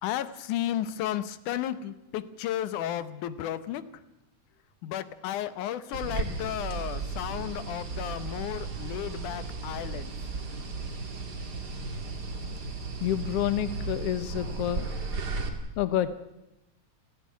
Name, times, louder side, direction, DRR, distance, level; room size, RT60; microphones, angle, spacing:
voice 1, 0.0-4.0 4.8-10.1, left 11 dB, 90° left, 14 dB, 2.5 m, -33 dB
sound 1, 5.9-15.5, right 3 dB, 35° right, 2.3 m, -35 dB
voice 2, 13.0-14.9 15.8-16.1, left 12 dB, 65° left, 12 dB, 1.7 m, -28 dB
29.5 x 10.5 x 9.4 m, 0.95 s
omnidirectional pair, 3.5 m